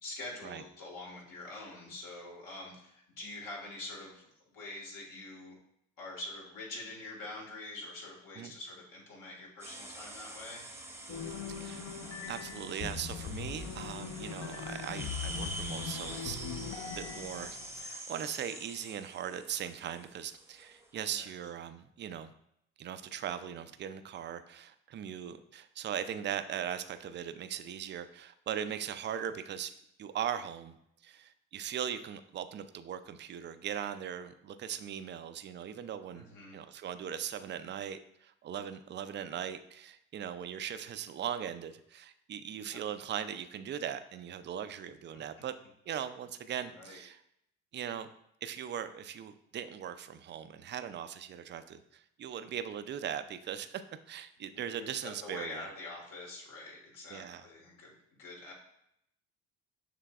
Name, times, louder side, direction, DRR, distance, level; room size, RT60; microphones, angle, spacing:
voice 1, 0.0-5.5 6.0-10.7 21.0-21.2 36.1-36.6 42.6-42.8 46.7-47.0 54.5-58.5, left 2 dB, 65° left, -2 dB, 1.8 m, -45 dB
sound 1, 9.6-21.0, right 1 dB, 5° right, 0.8 m, -46 dB
sound 2, 11.1-17.8, left 6 dB, 40° left, 0.6 m, -41 dB
voice 2, 11.5-11.9 12.3-16.4 16.7-22.3 22.8-29.7 30.0-30.7 31.0-36.2 36.5-45.6 45.9-47.2 47.7-48.1 48.4-53.8 54.1-55.7 57.1-57.5, right 9 dB, 30° right, 11 dB, 0.4 m, -39 dB
6.6 x 3.3 x 2.4 m, 0.75 s
supercardioid pair, 70°, 35 cm